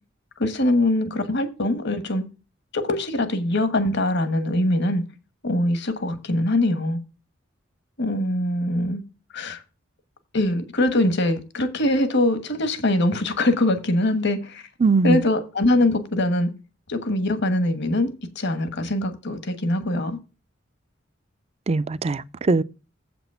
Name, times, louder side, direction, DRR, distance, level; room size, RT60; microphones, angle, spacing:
voice 1, 0.4-2.2 2.7-5.0 5.4-7.0 8.0-9.0 9.3-9.6 10.3-14.6 15.0-16.5 16.9-20.2, left 1 dB, 60° left, 1.3 m, -23 dB
voice 2, 14.8-15.2 21.7-22.6, right 3 dB, 30° right, 0.4 m, -20 dB
7.8 x 6.1 x 5.4 m
head